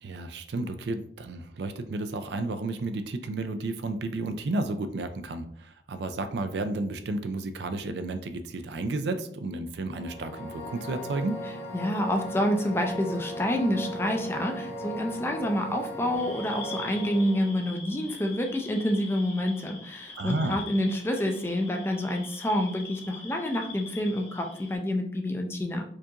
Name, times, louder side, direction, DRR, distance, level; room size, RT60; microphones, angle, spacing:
voice 1, 0.0-11.4 20.2-20.6, right 2 dB, 65° right, 9 dB, 0.4 m, -32 dB
sound 1, 9.9-17.7, equal, 55° left, 0.9 m, -38 dB
voice 2, 11.7-25.8, left 1 dB, 15° left, 3 dB, 0.4 m, -28 dB
sound 2, 16.2-24.8, left 4 dB, 35° left, 1.1 m, -44 dB
4.6 x 2.4 x 2.8 m, 0.63 s
head